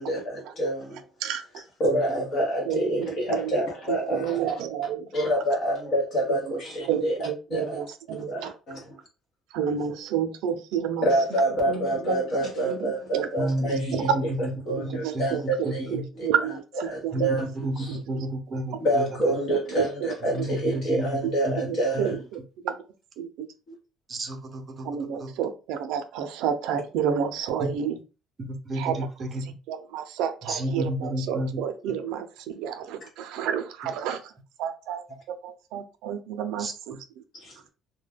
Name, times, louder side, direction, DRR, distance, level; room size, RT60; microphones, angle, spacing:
voice 1, 0.0-1.0 1.8-4.4 5.1-7.2 7.5-7.8 8.3-8.8 11.0-14.1 14.7-16.3 16.9-17.5 17.8-18.0 18.8-22.1 37.3-37.7, right 1 dB, 45° left, 0.7 m, -27 dB
voice 2, 1.2-2.2 2.7-5.1 6.3-6.6 6.9-8.5 9.5-11.1 11.6-14.2 14.8-17.4 17.9-18.3 19.5-19.9 20.4-21.0 21.2-21.3 21.7-22.8 23.2-23.5 24.8-28.0 28.7-28.9 29.4-34.3 34.6-37.0, right 8 dB, 85° right, 0.4 m, -31 dB
voice 3, 1.9-2.3 13.4-16.0 17.1-19.4 20.2-21.6 21.9-22.0 24.1-24.9 25.1-25.3 27.6-27.7 28.6-29.4 30.4-31.6 36.6-36.7, right 1 dB, 25° right, 0.5 m, -31 dB
2.2 x 2.2 x 3.3 m
cardioid pair, 165°, 0 cm